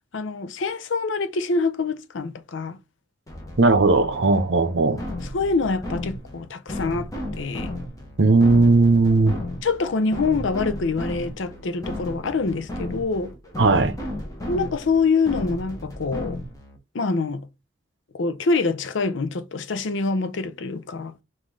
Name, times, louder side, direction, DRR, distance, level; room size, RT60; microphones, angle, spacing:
voice 1, 0.1-2.8 4.8-5.0 5.3-7.7 9.6-13.3 14.5-16.4 16.9-17.5 18.1-21.1, left 4 dB, 70° left, 0.6 m, -25 dB
sound 1, 3.3-16.8, left 1 dB, 15° left, 1.0 m, -34 dB
voice 2, 3.6-5.0 8.2-9.4 13.6-13.9, right 3 dB, 65° right, 0.7 m, -17 dB
5.3 x 2.6 x 3.1 m
head